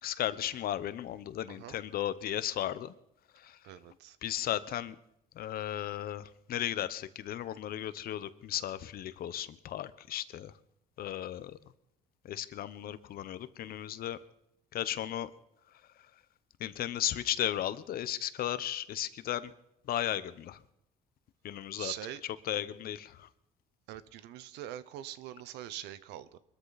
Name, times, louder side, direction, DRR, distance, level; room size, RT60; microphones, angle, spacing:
voice 1, 0.0-2.9 3.3-3.6 4.2-4.9 5.3-10.5 11.0-11.6 12.2-14.2 14.7-15.3 16.6-19.5 19.9-20.6 21.4-21.9 22.4-23.3, left 11 dB, 60° left, 15 dB, 1.0 m, -35 dB
voice 2, 3.6-4.2 21.8-22.2 23.9-26.4, right 12 dB, 90° right, 15 dB, 1.0 m, -43 dB
23.5 x 13.5 x 4.1 m, 0.78 s
cardioid pair, 110°, 17 cm